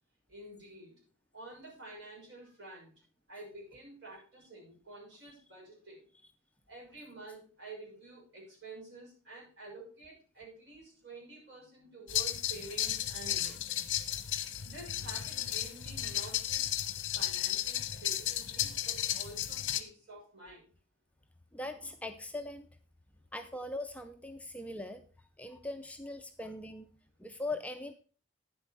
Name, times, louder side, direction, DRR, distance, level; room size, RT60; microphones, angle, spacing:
voice 1, 0.3-1.0 1.3-2.9 3.3-6.1 6.7-14.0 14.6-16.7 17.1-20.6, right 2 dB, 60° right, -4 dB, 6.1 m, -49 dB
sound 1, 12.1-19.8, left 11 dB, 65° left, 0.9 m, -34 dB
voice 2, 21.5-22.7 23.3-25.0 25.4-26.9 27.2-28.0, left 2 dB, 5° left, 6 dB, 0.4 m, -40 dB
9.5 x 7.7 x 4.5 m, 0.39 s
head